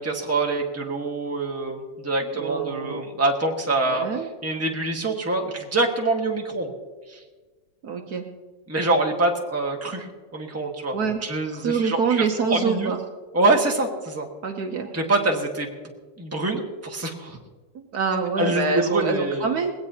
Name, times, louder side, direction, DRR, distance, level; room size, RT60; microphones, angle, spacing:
voice 1, 0.0-4.1 4.4-6.7 7.1-7.2 8.7-10.1 10.3-10.9 11.2-12.2 12.5-12.9 13.3-14.3 14.9-15.7 16.2-17.4 18.4-19.6, right 2 dB, 10° right, 1 dB, 1.3 m, -25 dB
voice 2, 2.4-3.0 3.9-4.3 7.8-8.3 10.9-11.2 11.6-13.0 14.4-14.9 17.7-19.7, right 5 dB, 60° right, 4 dB, 1.3 m, -25 dB
20.5 x 17.0 x 2.8 m, 1.4 s
omnidirectional pair, 2.0 m